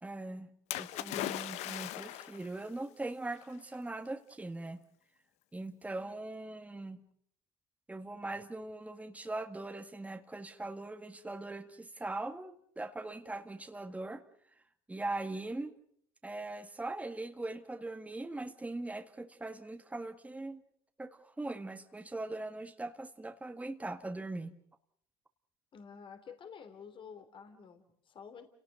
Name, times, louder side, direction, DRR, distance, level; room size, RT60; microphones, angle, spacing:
voice 1, 0.0-0.5 0.8-4.8 5.5-7.0 7.9-14.2 14.9-15.7 16.2-20.6 21.0-24.5, right 2 dB, 10° right, 6 dB, 1.9 m, -41 dB
Splash splatter, 0.7-2.5 3.4-3.5, left 14 dB, 70° left, 1.1 m, -38 dB
voice 2, 25.7-28.5, left 6 dB, 45° left, 7 dB, 3.2 m, -50 dB
30.0 x 18.0 x 6.7 m, 0.67 s
hypercardioid pair, 70°, 12 cm